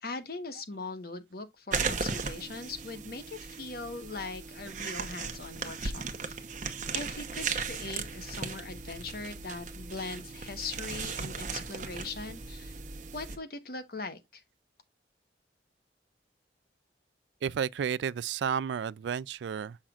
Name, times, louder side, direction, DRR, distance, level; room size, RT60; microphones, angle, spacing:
voice 1, 0.0-6.4 6.9-12.8 13.1-14.4, left 3 dB, 55° left, 1.1 m, -40 dB
sound 1, 1.7-13.4, right 5 dB, 45° right, 0.9 m, -37 dB
voice 2, 17.4-19.8, right 7 dB, 75° right, 0.3 m, -32 dB
7.5 x 5.7 x 2.4 m
head